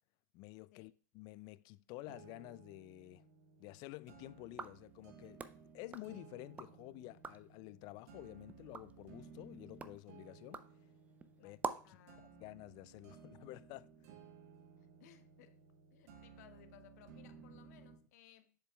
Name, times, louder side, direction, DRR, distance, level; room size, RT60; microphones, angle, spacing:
voice 1, 0.3-3.3 3.6-5.4 5.7-10.7 11.4-12.0 12.4-13.9, left 19 dB, 40° left, 0.4 m, -51 dB
sound 1, 2.1-18.1, right 6 dB, 60° right, 1.3 m, -59 dB
sound 2, 4.4-6.8 7.1-7.6 8.0-12.0, right 5 dB, 15° right, 0.5 m, -48 dB
voice 2, 11.8-12.5 14.8-15.6 15.9-18.6, left 11 dB, 60° left, 0.8 m, -63 dB
7.4 x 6.7 x 2.3 m
hypercardioid pair, 100°, 10 cm